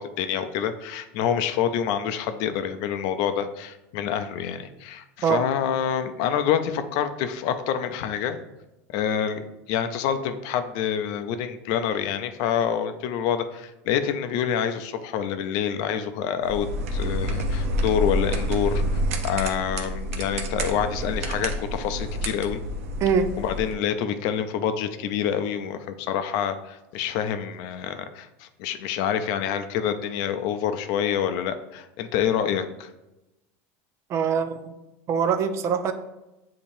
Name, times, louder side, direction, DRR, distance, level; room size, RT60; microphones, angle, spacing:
voice 1, 0.0-8.4 8.9-22.6 23.4-32.9, left 8 dB, 60° left, 9 dB, 0.4 m, -27 dB
sound 1, 16.4-23.7, equal, 90° right, 0.6 m, -28 dB
voice 2, 23.0-23.3 34.1-34.7 35.1-35.9, right 6 dB, 40° right, 9 dB, 0.4 m, -23 dB
6.9 x 2.8 x 2.7 m, 0.96 s
supercardioid pair, 130°, 8 cm